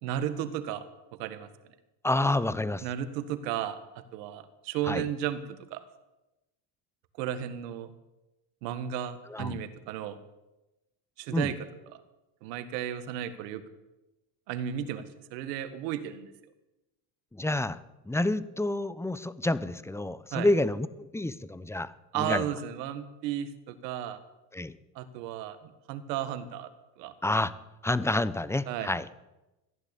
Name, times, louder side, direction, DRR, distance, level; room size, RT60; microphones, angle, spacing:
voice 1, 0.0-0.8 1.2-1.5 2.8-3.8 4.1-5.8 7.2-7.9 8.6-10.2 11.2-11.6 11.9-12.0 12.4-13.6 14.5-15.0 15.3-16.3 20.3-20.5 22.1-24.2 24.9-26.7 27.0-27.1 28.7-28.9, right 10 dB, 90° right, 11 dB, 1.7 m, -34 dB
voice 2, 2.0-2.8 4.9-5.0 9.3-9.6 11.3-11.5 17.3-17.8 18.1-21.9 22.2-22.4 24.5-24.7 27.2-27.5 27.8-29.0, left 2 dB, 5° left, 16 dB, 0.7 m, -28 dB
15.0 x 11.0 x 8.4 m, 1.0 s
supercardioid pair, 105°, 48 cm